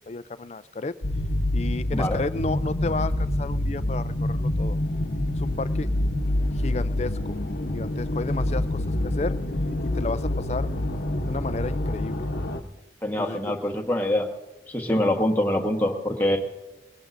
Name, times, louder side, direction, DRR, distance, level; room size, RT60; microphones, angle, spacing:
voice 1, 0.1-1.0 1.5-4.8 5.3-5.9 6.6-7.2 7.7-9.4 9.8-10.7 11.3-12.3 13.2-13.4, left 3 dB, 40° left, 14 dB, 0.4 m, -32 dB
sound 1, 1.0-12.6, left 1 dB, 75° left, 0.9 m, -27 dB
voice 2, 13.0-14.3 14.7-16.4, left 1 dB, 10° left, 1 dB, 1.3 m, -24 dB
21.5 x 18.0 x 2.6 m, 1.1 s
head